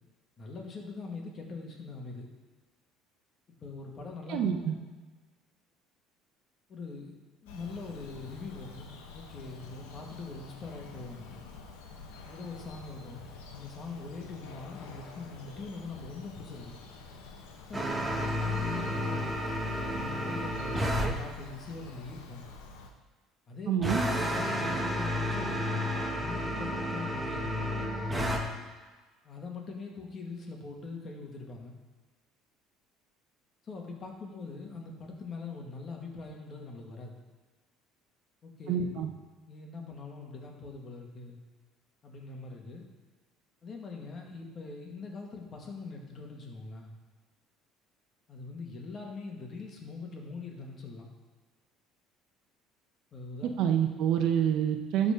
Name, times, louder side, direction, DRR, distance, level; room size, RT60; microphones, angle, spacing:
voice 1, 0.4-2.3 3.6-4.9 6.7-7.1 7.4-8.9 9.1-11.4 12.3-16.8 17.7-17.9 18.1-19.4 19.9-22.4 23.5-25.7 26.1-27.9 29.2-31.8 33.6-37.2 38.4-38.9 39.5-41.4 42.0-42.8 43.6-46.9 48.3-51.1 53.1-53.5, left 3 dB, 40° left, 1 dB, 2.0 m, -42 dB
voice 2, 4.3-4.8 23.7-24.0 38.7-39.1 53.6-55.1, right 8 dB, 70° right, 5 dB, 0.9 m, -27 dB
Bird vocalization bird call bird song, 7.5-22.9, left 4 dB, 85° left, 1.1 m, -48 dB
sound 1, 17.7-21.1 23.8-28.4, equal, 10° right, 1.4 m, -31 dB
12.0 x 4.2 x 5.1 m, 1.4 s
supercardioid pair, 85°, 0 cm